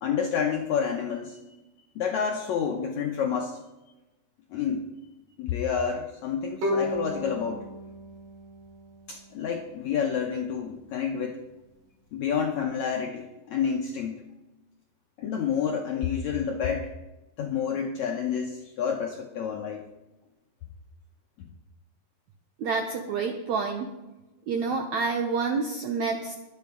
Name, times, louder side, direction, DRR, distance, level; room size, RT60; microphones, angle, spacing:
voice 1, 0.0-1.4 1.9-3.6 4.5-4.8 5.4-7.7 9.1-11.4 12.1-14.2 15.2-16.9 17.4-19.9 21.4-21.5, left 7 dB, 80° left, 2 dB, 1.7 m, -29 dB
Bowed string instrument, 6.6-9.7, left 1 dB, 60° right, 5.8 m, -33 dB
voice 2, 22.6-23.9 24.5-26.3, right 4 dB, 75° right, 4 dB, 1.7 m, -28 dB
21.5 x 8.1 x 3.7 m, 1.1 s
omnidirectional pair, 4.4 m